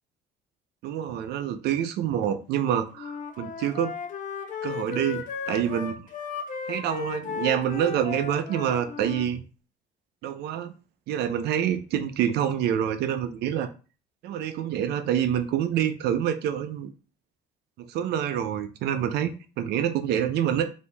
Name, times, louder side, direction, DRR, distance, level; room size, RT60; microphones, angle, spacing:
voice 1, 0.8-3.9 4.6-5.9 6.7-9.4 10.2-10.7 11.1-13.7 14.2-16.9 17.8-20.7, right 9 dB, 75° right, 0.6 m, -27 dB
Wind instrument woodwind instrument, 3.0-9.3, left 6 dB, 50° left, 0.9 m, -35 dB
5.0 x 2.7 x 3.4 m
cardioid pair, 110°, 17 cm